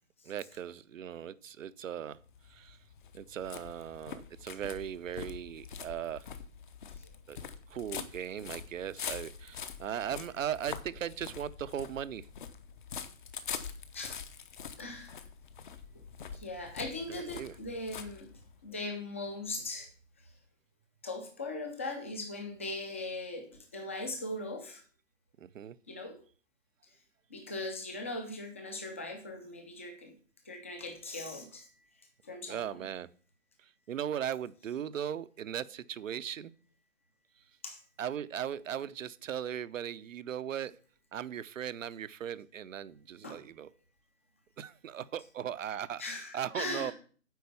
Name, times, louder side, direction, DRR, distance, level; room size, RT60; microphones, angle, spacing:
voice 1, 0.2-2.2 2.5-2.8 3.1-6.3 7.3-7.4 7.7-12.3 17.1-17.5 25.4-25.8 32.5-33.1 33.9-36.5 38.0-40.8 41.1-43.7 44.6-46.0 46.3-46.9, right 9 dB, 70° right, 16 dB, 0.8 m, -38 dB
sound 1, 2.2-18.7, left 7 dB, 35° left, 0.8 m, -45 dB
voice 2, 14.8-15.2 16.3-18.3 18.6-19.9 21.0-24.8 25.9-26.2 27.3-30.1 30.4-31.7 32.2-32.9 37.6-37.8 43.2-43.4 46.0-46.9, left 2 dB, 10° left, 4 dB, 0.5 m, -39 dB
9.3 x 4.3 x 6.9 m, 0.43 s
hypercardioid pair, 160°, 40 cm